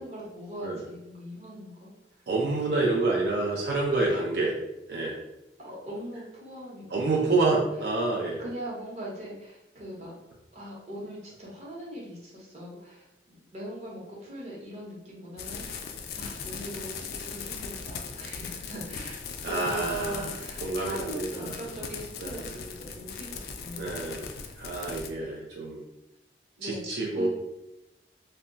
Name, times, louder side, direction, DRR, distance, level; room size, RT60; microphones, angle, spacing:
voice 1, 0.0-1.9 5.6-7.6 8.4-10.1 10.5-15.8 16.1-23.9 24.4-24.5 26.6-27.3, right 1 dB, 40° right, -4 dB, 0.8 m, -40 dB
voice 2, 2.3-4.6 4.9-5.2 6.9-8.4 19.4-20.3 20.6-21.5 22.2-22.4 23.8-25.8 26.6-27.3, right 3 dB, 70° right, -2 dB, 0.4 m, -28 dB
sound 1, 15.4-25.1, left 6 dB, 60° left, 0.3 m, -39 dB
2.2 x 2.1 x 3.7 m, 0.92 s
head